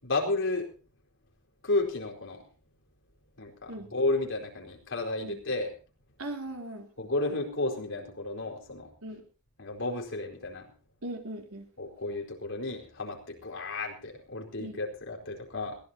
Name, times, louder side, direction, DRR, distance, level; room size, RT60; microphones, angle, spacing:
voice 1, 0.0-0.7 1.6-2.4 3.4-5.7 7.0-8.9 9.6-10.7 11.8-15.8, left 2 dB, 55° left, 1 dB, 4.5 m, -32 dB
voice 2, 6.2-6.9 9.0-9.2 11.0-11.7 14.6-14.8, right 1 dB, 70° right, 4 dB, 3.7 m, -39 dB
21.5 x 17.5 x 2.9 m, 0.36 s
head